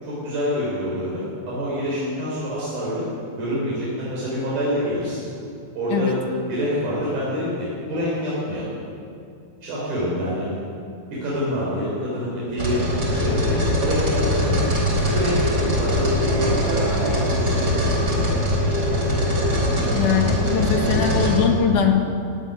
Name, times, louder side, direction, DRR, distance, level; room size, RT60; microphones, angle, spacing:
voice 1, 0.0-3.1 3.4-5.3 5.8-6.2 6.5-8.7 9.6-10.5 11.2-14.7 15.0-17.9, equal, 70° right, -7 dB, 7.0 m, -26 dB
sound 1, 12.6-21.4, left 1 dB, 25° right, 4.8 m, -21 dB
voice 2, 19.9-22.1, left 7 dB, 60° left, 3 dB, 2.9 m, -21 dB
18.0 x 17.5 x 9.8 m, 2.5 s
omnidirectional pair, 4.4 m